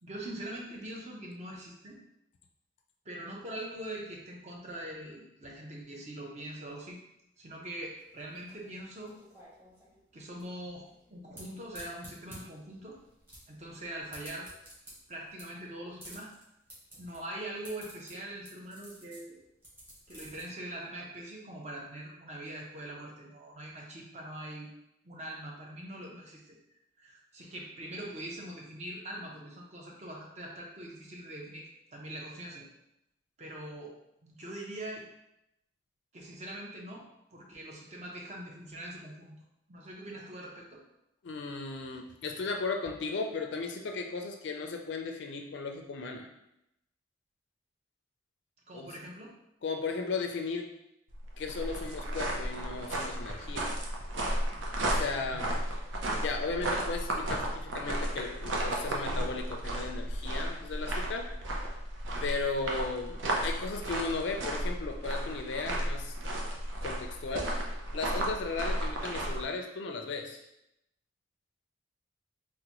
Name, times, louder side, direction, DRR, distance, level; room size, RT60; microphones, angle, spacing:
voice 1, 0.0-2.0 3.0-7.0 7.4-9.1 10.1-10.8 11.1-13.0 13.5-14.5 15.1-16.3 17.0-19.4 20.1-24.7 25.0-26.6 27.0-32.7 33.4-34.0 34.2-35.1 36.1-37.0 37.3-39.3 39.7-40.8 48.7-49.3 55.2-55.4, right 1 dB, 35° right, -2 dB, 0.6 m, -43 dB
sound 1, 7.9-20.4, equal, 10° right, 0.9 m, -52 dB
voice 2, 41.2-46.3 48.7-49.0 49.6-50.7 51.4-53.7 54.8-55.6 56.1-61.3 62.2-66.1 66.8-67.5 67.9-70.4, left 4 dB, 70° left, 3 dB, 0.4 m, -36 dB
sound 2, 51.1-69.4, right 1 dB, 80° right, 0.6 m, -34 dB
3.8 x 2.1 x 2.9 m, 0.83 s
head